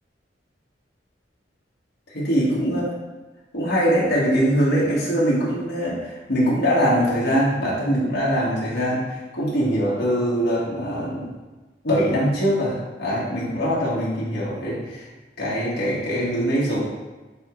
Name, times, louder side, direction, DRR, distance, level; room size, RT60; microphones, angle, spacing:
voice 1, 2.1-2.8 3.5-9.1 9.3-11.3 11.8-15.0 15.4-16.8, equal, 60° left, -7 dB, 1.7 m, -22 dB
8.8 x 3.6 x 3.2 m, 1.2 s
head